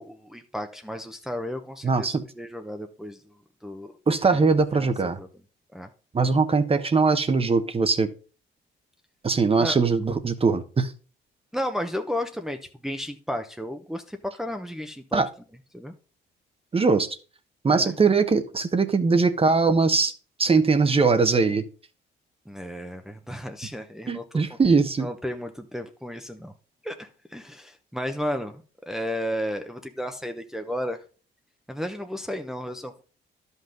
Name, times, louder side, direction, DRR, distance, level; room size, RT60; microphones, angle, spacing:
voice 1, 0.0-3.2 3.6-3.9 4.8-5.3 5.7-5.9 9.6-9.8 11.5-15.2 15.7-15.9 17.7-18.0 22.5-24.4 25.0-26.5 26.8-31.0 31.7-33.0, equal, ahead, 0.9 m, -33 dB
voice 2, 1.8-2.2 4.1-5.2 6.1-8.1 9.2-10.9 15.1-15.3 16.7-17.1 17.6-20.1 20.4-21.6 24.1-25.1, right 4 dB, 30° right, 1.0 m, -21 dB
11.5 x 5.6 x 3.9 m
cardioid pair, 90°, 20 cm